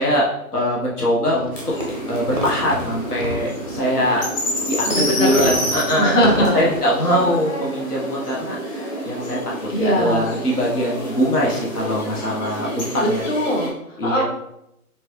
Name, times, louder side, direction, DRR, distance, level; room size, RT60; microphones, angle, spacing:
voice 1, 0.0-1.6 2.1-4.3 4.7-13.3 14.0-14.2, equal, 80° left, -4 dB, 1.3 m, -22 dB
Fireworks, 1.3-7.4, right 1 dB, 25° right, 0.4 m, -32 dB
sound 1, 1.5-13.7, equal, 30° left, 1.1 m, -28 dB
voice 2, 4.8-5.5 6.0-6.7 9.7-10.3 13.3-14.2, equal, 55° left, -2 dB, 1.4 m, -20 dB
6.0 x 2.3 x 3.1 m, 0.81 s
figure-of-eight pair, 135°, 45 cm